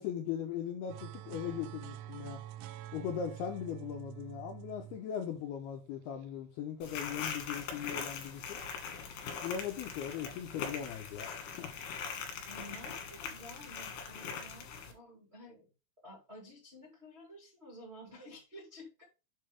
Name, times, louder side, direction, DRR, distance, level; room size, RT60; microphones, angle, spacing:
voice 1, 0.0-2.4 2.9-8.6 9.4-11.7, left 8 dB, 85° left, 2.3 m, -39 dB
sound 1, 0.9-6.3, right 12 dB, 90° right, 3.1 m, -47 dB
sound 2, 6.8-14.9, left 6 dB, 65° left, 3.1 m, -41 dB
voice 2, 12.5-15.7 16.0-19.0, left 1 dB, 50° right, 0.7 m, -52 dB
7.7 x 5.5 x 3.5 m
omnidirectional pair, 5.6 m